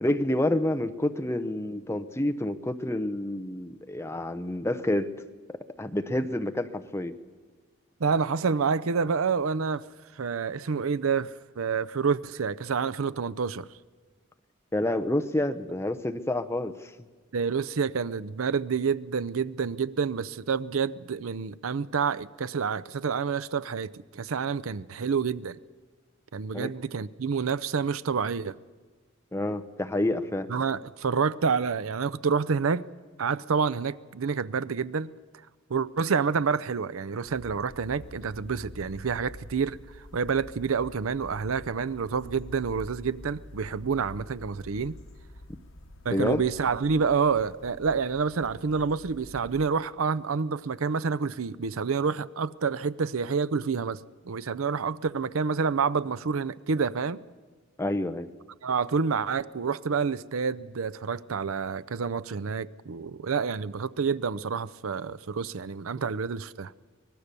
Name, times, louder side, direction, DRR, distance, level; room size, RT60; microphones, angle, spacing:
voice 1, 0.0-5.1 5.8-7.1 14.7-16.9 26.5-26.7 29.3-30.5 46.1-46.4 57.8-58.3, left 1 dB, 15° left, 0.8 m, -28 dB
voice 2, 8.0-9.8 10.2-13.7 17.3-25.6 26.3-28.5 30.5-32.8 33.2-35.1 35.7-39.8 40.1-45.0 46.0-54.0 54.2-57.2 58.6-66.7, right 5 dB, 85° right, 0.6 m, -28 dB
sound 1, 37.2-49.7, left 1 dB, 75° left, 1.5 m, -47 dB
24.5 x 20.0 x 6.8 m
head